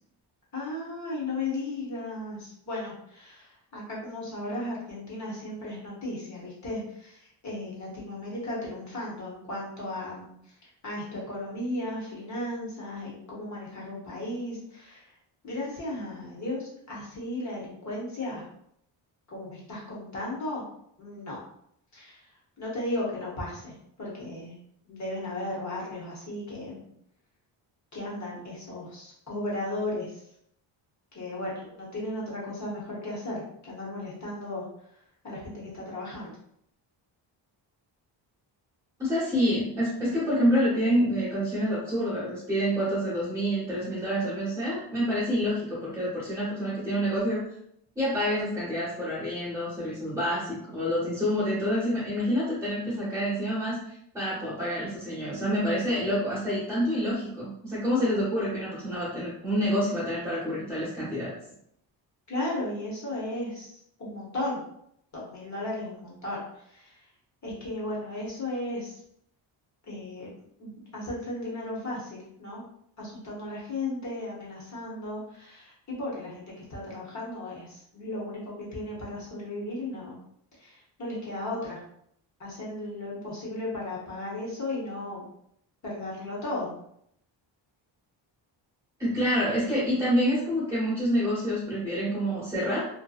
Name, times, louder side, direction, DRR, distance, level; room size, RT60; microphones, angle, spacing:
voice 1, 0.5-10.3 10.8-15.0 15.4-18.5 19.3-20.6 21.0-21.4 21.9-22.2 22.6-24.6 24.9-26.9 27.9-30.2 31.1-34.7 35.2-36.3 62.3-64.6 65.1-67.0 67.4-69.0 69.9-70.3 70.6-72.6 73.0-80.2 80.6-81.8 82.4-85.3 85.8-86.7, left 1 dB, 35° left, -5 dB, 0.9 m, -35 dB
voice 2, 39.0-47.4 48.0-61.3 89.0-92.9, equal, 10° right, -11 dB, 0.8 m, -27 dB
2.6 x 2.1 x 2.3 m, 0.72 s
cardioid pair, 140°, 46 cm